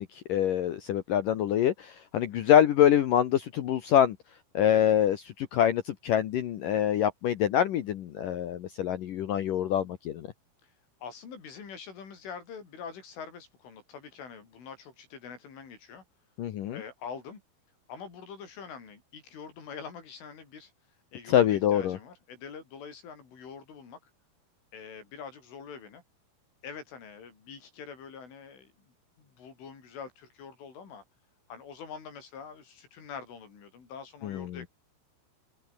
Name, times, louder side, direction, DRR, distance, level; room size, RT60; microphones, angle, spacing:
voice 1, 0.0-4.2 4.5-10.3 16.4-16.8 21.3-22.0 34.2-34.6, left 10 dB, 85° left, 1.9 m, -25 dB
voice 2, 11.0-16.0 16.7-17.4 17.9-20.7 21.1-24.0 24.7-26.0 26.6-31.0 31.5-34.7, left 6 dB, 70° left, 8.5 m, -45 dB
omnidirectional pair, 5.9 m